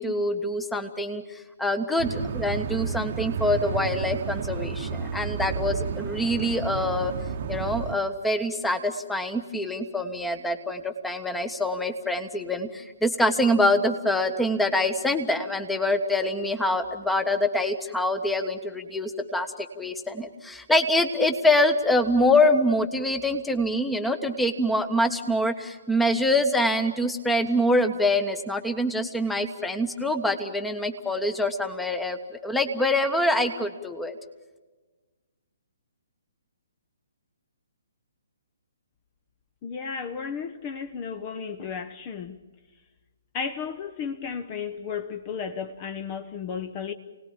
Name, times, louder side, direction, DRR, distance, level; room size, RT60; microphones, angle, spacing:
voice 1, 0.0-7.1 7.5-34.1, left 1 dB, 5° left, 8 dB, 1.3 m, -25 dB
sound 1, 2.0-8.0, right 6 dB, 40° right, 1.1 m, -31 dB
voice 2, 39.6-42.4 43.3-46.9, left 6 dB, 30° left, 8 dB, 1.1 m, -33 dB
29.0 x 19.0 x 8.9 m, 1.3 s
figure-of-eight pair, 130°, 0 cm